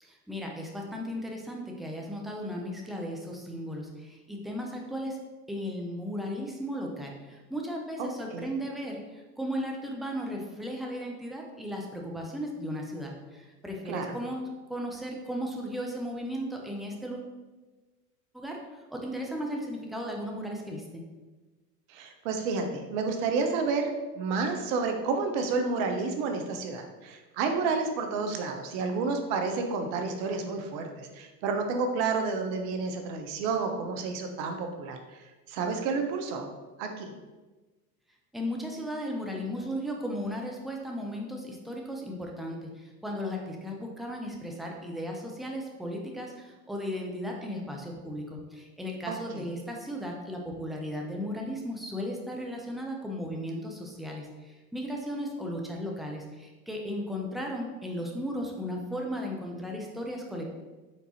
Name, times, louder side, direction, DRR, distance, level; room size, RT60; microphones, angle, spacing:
voice 1, 0.0-5.2 5.5-17.3 18.3-20.8 38.3-60.6, equal, ahead, 0 dB, 0.4 m, -36 dB
voice 2, 8.0-8.5 13.9-14.2 21.9-36.5 36.8-37.1 49.1-49.4, right 4 dB, 55° right, 5 dB, 0.8 m, -30 dB
4.6 x 3.9 x 2.9 m, 1.2 s
hypercardioid pair, 95°, 49 cm